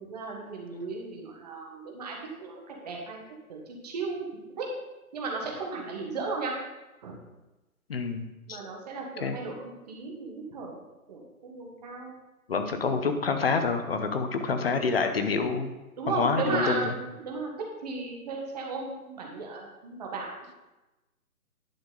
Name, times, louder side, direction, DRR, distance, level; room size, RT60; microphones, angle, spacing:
voice 1, 0.0-3.2 3.5-3.6 3.8-4.2 4.6-4.7 5.1-6.5 7.0-7.2 8.4-10.8 11.1-12.1 16.0-17.5 17.8-20.4, right 3 dB, 25° right, -1 dB, 1.4 m, -35 dB
voice 2, 7.9-8.6 9.2-9.4 12.5-15.7 16.1-16.9, left 4 dB, 40° left, 7 dB, 0.9 m, -27 dB
10.5 x 5.9 x 3.9 m, 1.0 s
hypercardioid pair, 165°, 45 cm